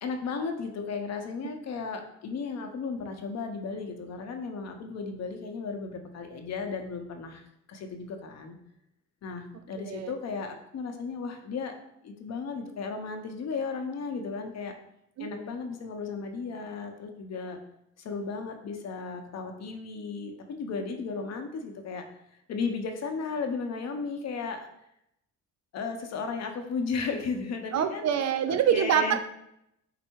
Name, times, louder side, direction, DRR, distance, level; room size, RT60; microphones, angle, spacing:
voice 1, 0.0-8.6 9.2-11.8 12.0-14.7 15.2-17.6 18.0-22.0 22.5-24.7 25.7-28.1 28.5-29.2, left 4 dB, 55° left, 5 dB, 0.7 m, -35 dB
voice 2, 27.7-29.2, right 9 dB, 55° right, 10 dB, 0.4 m, -25 dB
4.4 x 2.0 x 4.4 m, 0.78 s
cardioid pair, 80°, 31 cm